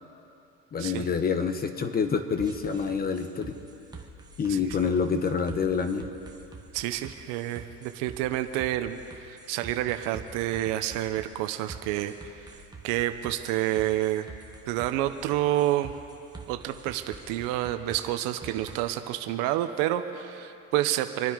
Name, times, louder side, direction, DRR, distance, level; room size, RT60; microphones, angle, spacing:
voice 1, 0.7-3.5 4.4-6.0, left 6 dB, 30° left, 8 dB, 1.2 m, -27 dB
sound 1, 2.4-18.8, right 3 dB, 10° right, 1.5 m, -46 dB
voice 2, 6.7-12.6 12.8-14.3 14.7-16.0 16.5-21.3, right 13 dB, 70° right, 9 dB, 0.9 m, -29 dB
26.5 x 9.5 x 5.1 m, 2.7 s
supercardioid pair, 110°, 33 cm